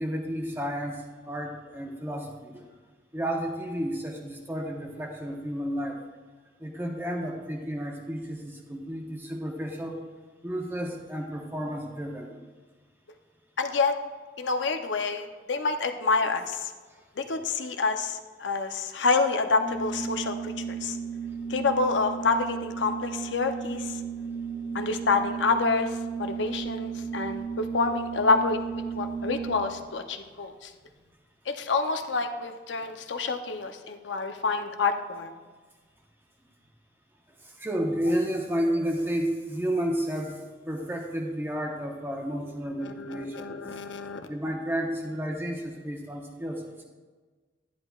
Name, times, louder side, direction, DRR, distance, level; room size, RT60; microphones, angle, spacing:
voice 1, 0.0-2.7 3.1-6.0 6.6-10.0 10.4-12.4 37.4-40.4 40.7-43.6 44.3-46.8, equal, 10° right, 1 dB, 0.9 m, -31 dB
voice 2, 13.6-14.0 14.4-16.7 17.2-21.0 21.5-24.0 24.7-28.6 29.0-30.7 31.5-35.3 42.8-44.2, left 4 dB, 90° left, 6 dB, 0.7 m, -28 dB
Organ, 19.5-29.8, right 6 dB, 80° right, 2.0 m, -34 dB
10.5 x 10.0 x 2.4 m, 1.4 s
head